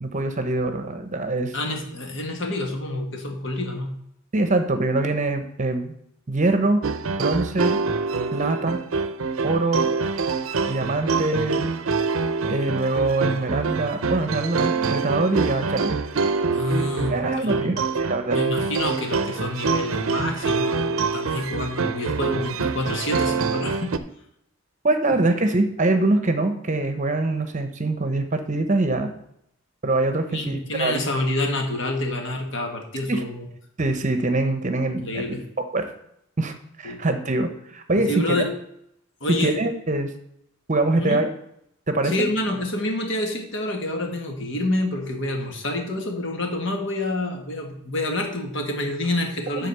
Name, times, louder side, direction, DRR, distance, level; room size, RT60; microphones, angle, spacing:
voice 1, 0.0-1.6 4.3-6.0 6.3-6.8 7.2-7.8 8.3-8.8 9.4-9.9 10.7-11.7 12.5-16.0 17.1-18.4 24.8-29.1 29.8-31.0 33.1-33.2 33.8-35.4 35.7-35.9 36.4-38.4 39.3-40.1 40.7-41.3 41.9-42.1 49.6-49.7, right 2 dB, 35° right, 8 dB, 0.8 m, -23 dB
voice 2, 1.5-4.0 16.5-17.8 18.3-23.9 30.3-33.5 35.0-35.4 36.8-37.0 38.0-38.5 39.2-39.6 41.0-41.2 42.0-49.7, left 1 dB, 60° left, 2 dB, 1.7 m, -28 dB
sound 1, 6.8-24.0, right 4 dB, 80° right, 0.6 m, -25 dB
9.9 x 4.1 x 6.7 m, 0.75 s
head